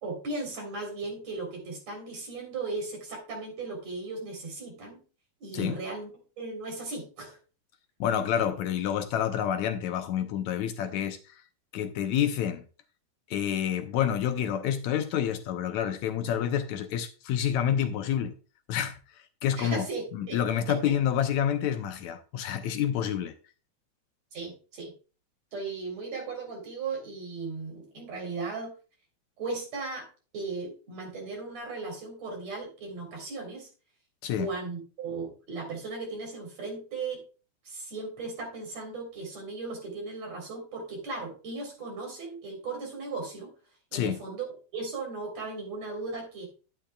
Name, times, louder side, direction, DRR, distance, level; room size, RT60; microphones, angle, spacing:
voice 1, 0.0-5.0 5.4-6.1 6.4-7.4 19.6-20.4 20.7-20.8 24.3-24.9 25.5-28.7 29.4-30.1 30.3-33.7 34.4-37.2 37.6-43.5 43.9-46.5, right 3 dB, 60° right, 4.8 m, -37 dB
voice 2, 8.0-11.2 11.7-12.6 13.3-18.3 18.7-19.0 19.4-19.9 20.1-23.4 34.2-34.5 43.9-44.2, left 9 dB, 75° left, 2.0 m, -28 dB
12.0 x 9.9 x 2.3 m
omnidirectional pair, 3.5 m